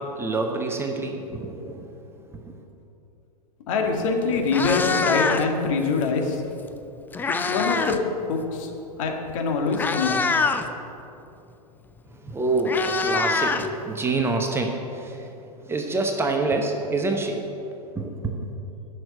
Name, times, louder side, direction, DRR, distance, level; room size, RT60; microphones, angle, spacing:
voice 1, 0.0-1.9 2.3-2.5 12.1-15.3 15.6-17.6 17.9-18.5, right 2 dB, 10° right, 3 dB, 0.9 m, -27 dB
voice 2, 3.7-6.4 7.3-8.7 9.0-10.5, left 4 dB, 55° left, 2 dB, 1.8 m, -24 dB
Meow, 3.9-4.0 4.4-5.6 6.7-8.0 8.3-8.6 9.3-9.4 9.7-10.7 12.0-12.1 12.3-14.2, left 4 dB, 10° left, 0.5 m, -25 dB
10.5 x 6.6 x 7.8 m, 2.8 s
figure-of-eight pair, 105°, 21 cm